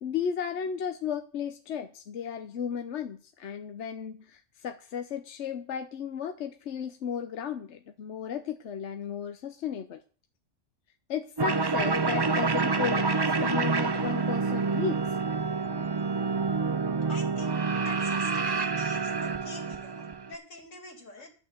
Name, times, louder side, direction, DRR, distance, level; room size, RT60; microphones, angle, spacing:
voice 1, 0.0-10.0 11.1-15.1 21.2-21.3, left 7 dB, 70° left, 7 dB, 1.1 m, -34 dB
sound 1, 11.4-20.3, right 4 dB, 40° right, 0.3 m, -28 dB
voice 2, 17.1-21.3, left 2 dB, 85° left, 3 dB, 2.9 m, -45 dB
11.0 x 6.2 x 7.9 m, 0.40 s
omnidirectional pair, 1.3 m